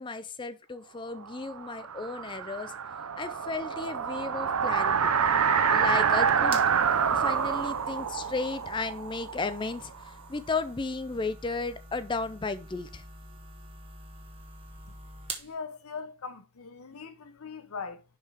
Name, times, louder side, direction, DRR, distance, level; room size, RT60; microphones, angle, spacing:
voice 1, 0.0-2.7 3.2-5.0 5.7-6.6 7.1-13.0, left 3 dB, 20° left, 0.4 m, -34 dB
sound 1, 1.4-10.1, right 7 dB, 85° right, 0.6 m, -27 dB
sound 2, 5.9-15.5, right 2 dB, 25° right, 1.2 m, -46 dB
voice 2, 15.4-18.0, left 5 dB, 75° left, 0.8 m, -40 dB
5.6 x 4.5 x 4.9 m
head